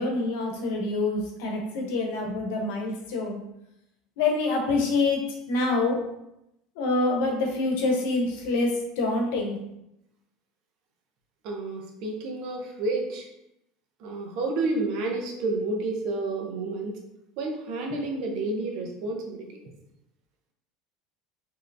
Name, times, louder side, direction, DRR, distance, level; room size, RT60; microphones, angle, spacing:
voice 1, 0.0-3.4 4.2-6.0 6.8-9.6, left 3 dB, 75° left, 1 dB, 0.8 m, -26 dB
voice 2, 11.4-13.3 14.0-17.0 17.4-19.5, right 2 dB, 65° right, 2 dB, 0.7 m, -30 dB
3.2 x 2.8 x 2.6 m, 0.84 s
supercardioid pair, 115°, 0 cm